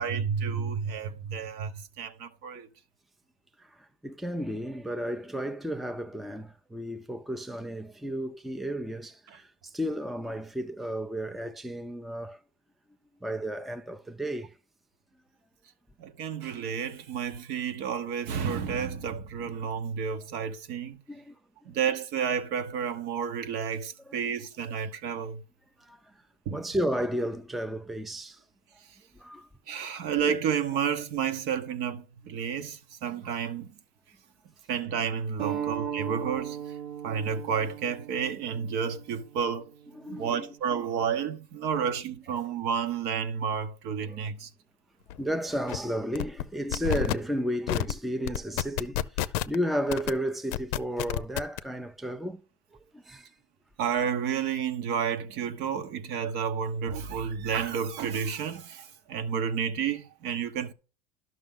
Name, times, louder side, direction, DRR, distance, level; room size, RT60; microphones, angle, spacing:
voice 1, 0.0-2.7 16.0-21.0 21.6-25.4 26.5-26.6 29.7-33.8 34.7-36.6 37.0-39.7 40.1-44.5 53.8-60.7, right 7 dB, 60° right, 1.0 m, -31 dB
voice 2, 3.6-12.4 13.2-14.5 21.1-21.4 24.1-24.2 25.8-26.1 26.5-28.4 29.1-29.5 30.7-30.8 33.1-33.3 35.6-36.0 39.9-40.5 41.7-41.8 44.0-44.2 45.2-52.4 52.7-53.3, equal, ahead, 0.5 m, -33 dB
sound 1, 35.4-40.6, right 10 dB, 75° right, 1.4 m, -38 dB
sound 2, 45.1-45.2 45.5-45.8 46.2-46.4 46.7-47.1 47.7-47.9 48.3-49.6 49.9-50.1 50.5-51.6, left 14 dB, 75° left, 0.5 m, -29 dB
11.5 x 6.0 x 3.7 m
supercardioid pair, 115°, 19 cm